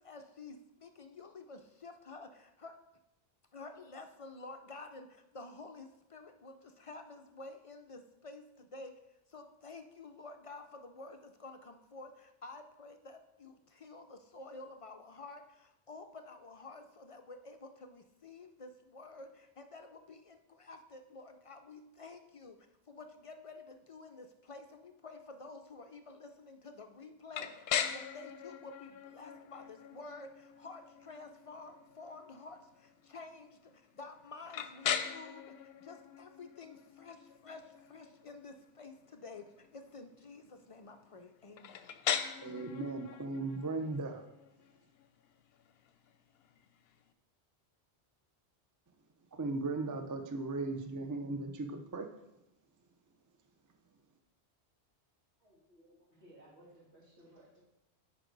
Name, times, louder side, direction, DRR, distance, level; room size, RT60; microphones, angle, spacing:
voice 1, 0.0-2.8 3.5-8.9 9.3-41.9, left 3 dB, 50° left, 7 dB, 0.4 m, -51 dB
sound 1, 27.3-47.1, left 8 dB, 70° left, 0.8 m, -41 dB
voice 2, 42.4-44.2 49.3-52.1, right 3 dB, 25° right, 5 dB, 0.5 m, -37 dB
voice 3, 55.4-57.6, right 1 dB, 85° right, -6 dB, 2.8 m, -60 dB
9.8 x 4.8 x 3.9 m, 0.89 s
omnidirectional pair, 1.1 m